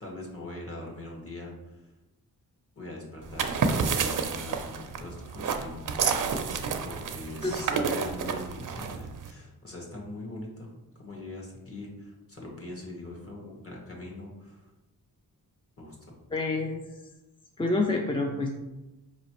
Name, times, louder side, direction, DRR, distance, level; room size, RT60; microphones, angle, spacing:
voice 1, 0.0-1.9 2.7-5.8 6.3-10.7 11.0-14.7 15.8-16.1, left 2 dB, 35° left, -2 dB, 1.2 m, -42 dB
sound 1, 3.2-9.3, right 5 dB, 55° right, 0.5 m, -30 dB
voice 2, 16.3-17.0 17.6-18.5, left 2 dB, 15° left, 2 dB, 0.3 m, -28 dB
4.6 x 3.0 x 3.0 m, 1.0 s
wide cardioid pair, 80°, 38 cm